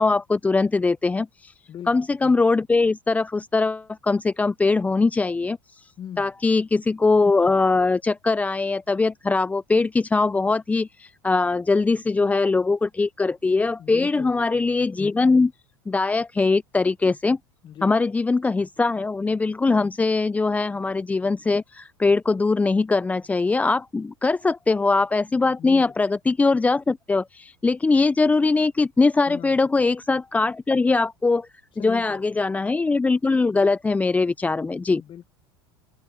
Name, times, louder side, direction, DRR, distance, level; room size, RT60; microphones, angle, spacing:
voice 1, 0.0-1.5 1.9-5.9 6.2-15.5 15.9-17.4 17.8-31.5 31.8-35.0, left 3 dB, 10° left, 0.4 m, -21 dB
voice 2, 6.0-6.3 13.8-14.7 17.6-18.0 25.6-25.9 29.3-29.7 31.8-32.3 35.0-35.3, left 9 dB, 40° left, 1.5 m, -40 dB
hypercardioid pair, 90°, 13 cm